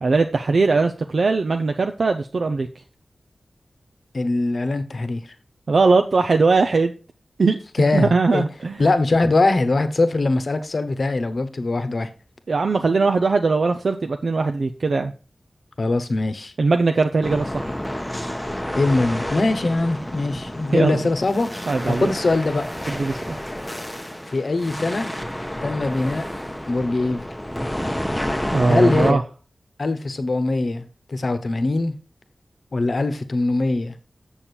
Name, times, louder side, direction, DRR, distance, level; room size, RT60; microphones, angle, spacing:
voice 1, 0.0-2.7 5.7-6.9 7.4-7.6 7.9-8.8 12.5-15.1 16.6-17.7 20.7-21.0 21.7-22.1 22.9-23.4 28.5-29.2, right 3 dB, 70° right, 0.5 m, -20 dB
voice 2, 4.1-5.2 7.8-8.4 8.8-12.1 15.8-16.5 18.8-21.5 21.9-22.6 24.3-25.1 25.6-26.2 26.7-27.3 28.7-29.2 29.8-31.9 32.7-33.9, left 2 dB, 60° left, 0.9 m, -22 dB
sound 1, 17.2-29.1, equal, 5° left, 0.8 m, -30 dB
7.3 x 6.9 x 4.4 m
wide cardioid pair, 90°, 0 cm